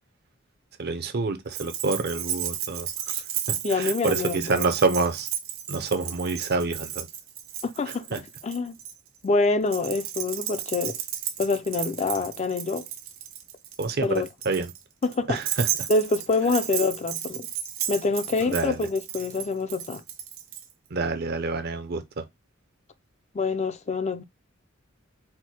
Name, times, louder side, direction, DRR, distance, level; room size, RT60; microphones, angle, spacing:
voice 1, 0.8-5.3 5.7-7.1 7.9-8.2 13.8-14.7 15.3-15.7 18.4-18.9 20.9-22.2, right 3 dB, 50° right, 0.6 m, -28 dB
Keys jangling, 1.5-8.9 9.7-20.7, right 10 dB, 85° right, 0.7 m, -33 dB
voice 2, 3.6-4.7 7.6-8.8 9.2-11.0 11.4-12.9 14.0-14.3 15.0-15.4 15.9-17.5 17.9-20.0 23.3-24.2, left 3 dB, 35° left, 0.4 m, -26 dB
4.5 x 2.1 x 4.3 m
head